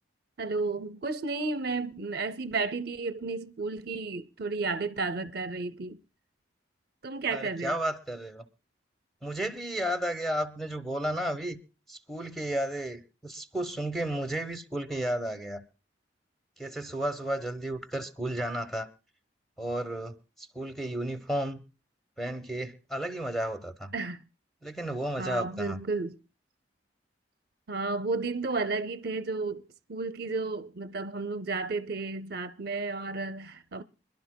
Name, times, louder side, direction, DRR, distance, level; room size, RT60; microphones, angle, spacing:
voice 1, 0.4-6.0 7.0-7.8 23.9-24.2 25.2-26.2 27.7-33.8, right 3 dB, 55° right, 0.6 m, -32 dB
voice 2, 7.3-8.4 9.2-11.6 11.9-15.6 16.6-18.9 19.6-21.6 22.2-23.9 24.6-25.8, right 1 dB, ahead, 1.0 m, -33 dB
26.5 x 11.5 x 2.2 m
head